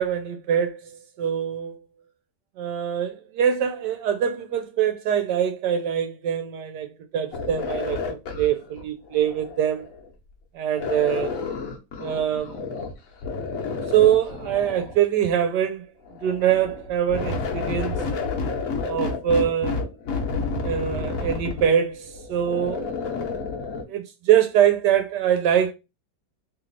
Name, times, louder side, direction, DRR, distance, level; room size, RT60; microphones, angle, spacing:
voice 1, 0.0-1.8 2.6-9.8 10.5-11.3 12.0-12.6 13.9-15.8 16.2-18.0 18.9-19.8 20.6-22.9 23.9-25.7, right 9 dB, 75° right, 1.1 m, -23 dB
sound 1, 7.3-10.1 10.8-12.9 13.2-15.0 16.1-23.8, left 4 dB, 55° left, 1.1 m, -30 dB
3.1 x 3.1 x 3.8 m
omnidirectional pair, 2.0 m